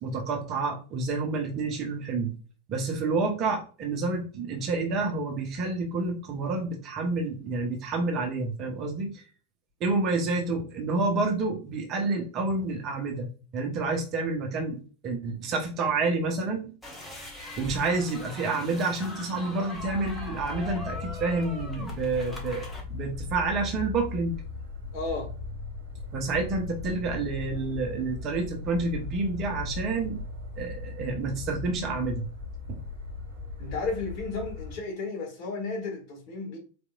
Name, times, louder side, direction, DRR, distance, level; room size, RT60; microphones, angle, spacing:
voice 1, 0.0-2.3 2.7-9.1 9.8-16.7 17.6-24.4 26.1-30.2 30.6-32.3 32.7-32.8, right 3 dB, 35° right, 1.0 m, -29 dB
sound 1, 16.8-22.8, left 2 dB, 5° left, 1.2 m, -41 dB
sound 2, 19.7-34.8, left 4 dB, 55° right, 1.4 m, -38 dB
voice 2, 24.9-25.3 33.6-36.6, left 3 dB, 40° left, 1.5 m, -33 dB
4.2 x 3.3 x 2.5 m
figure-of-eight pair, 90°, 0 cm